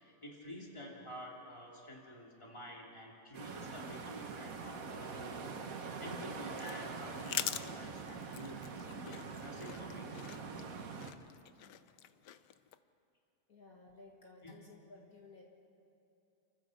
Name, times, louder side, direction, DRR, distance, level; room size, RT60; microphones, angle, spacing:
voice 1, 0.0-10.1 14.4-14.5, equal, 15° left, -2 dB, 3.0 m, -50 dB
sound 1, 3.3-11.1, right 5 dB, 55° right, 1.6 m, -44 dB
sound 2, 5.9-12.8, left 11 dB, 85° left, 1.3 m, -45 dB
voice 2, 13.5-15.4, left 3 dB, 55° left, -1 dB, 2.3 m, -57 dB
29.0 x 15.0 x 6.5 m, 2.7 s
omnidirectional pair, 1.8 m